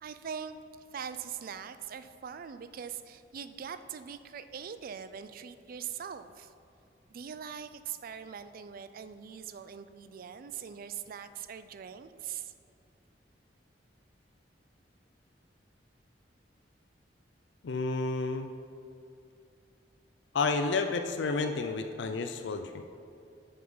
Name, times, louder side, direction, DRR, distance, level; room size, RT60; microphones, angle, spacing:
voice 1, 0.0-6.5 7.1-12.5, right 7 dB, 50° right, 12 dB, 0.4 m, -42 dB
voice 2, 17.6-18.5 20.3-22.8, left 3 dB, 70° left, 7 dB, 0.4 m, -30 dB
9.4 x 5.4 x 5.5 m, 2.5 s
head